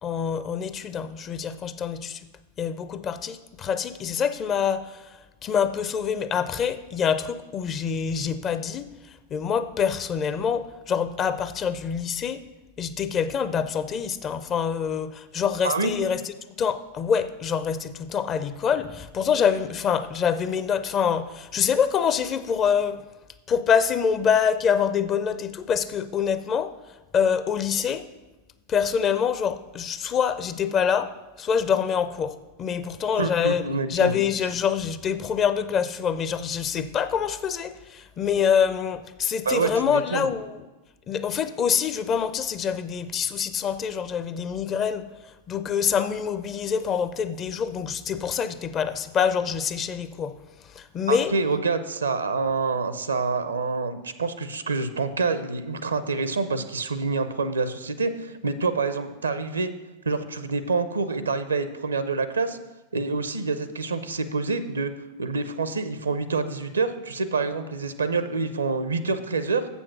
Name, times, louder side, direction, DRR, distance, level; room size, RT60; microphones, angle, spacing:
voice 1, 0.0-2.2 2.6-5.0 5.4-8.9 9.3-12.4 12.8-16.2 16.6-23.0 23.5-26.7 27.1-28.1 28.7-31.1 31.4-33.6 33.9-40.6 41.1-45.1 45.5-50.4 50.7-51.3, left 7 dB, 30° left, 12 dB, 0.5 m, -25 dB
voice 2, 15.6-15.9 33.1-34.1 39.4-40.3 51.1-59.7 60.1-62.6 62.9-64.9 65.2-69.7, right 4 dB, 75° right, 12 dB, 0.6 m, -27 dB
7.5 x 7.0 x 6.0 m, 1.1 s
figure-of-eight pair, 90°, 0 cm